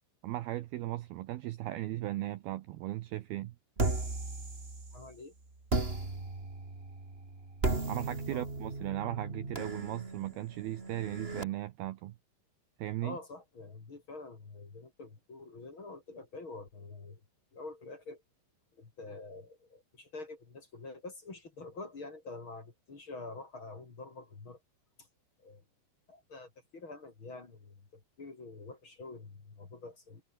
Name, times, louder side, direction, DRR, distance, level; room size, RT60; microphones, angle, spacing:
voice 1, 0.2-3.6 7.9-12.2 12.8-13.2, right 15 dB, 90° right, 2.1 m, -37 dB
sound 1, 3.8-5.1 5.7-11.4, right 3 dB, 20° right, 1.9 m, -36 dB
voice 2, 4.9-5.3 8.3-8.5 13.0-17.2 17.5-18.2 18.8-24.6 25.4-25.6 26.1-30.2, left 3 dB, 30° left, 3.2 m, -47 dB
omnidirectional pair, 5.7 m